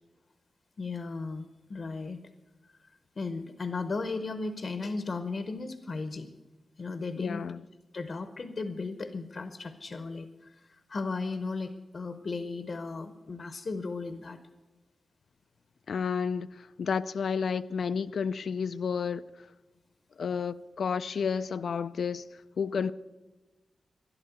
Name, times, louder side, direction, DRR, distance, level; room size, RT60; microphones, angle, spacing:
voice 1, 0.8-2.2 3.2-6.3 6.8-7.4 7.9-14.4, left 3 dB, 45° left, 0.8 m, -36 dB
voice 2, 7.2-7.6 15.9-19.5 20.2-22.9, left 6 dB, 70° left, 0.4 m, -31 dB
13.0 x 11.5 x 7.9 m
wide cardioid pair, 165°, 0 cm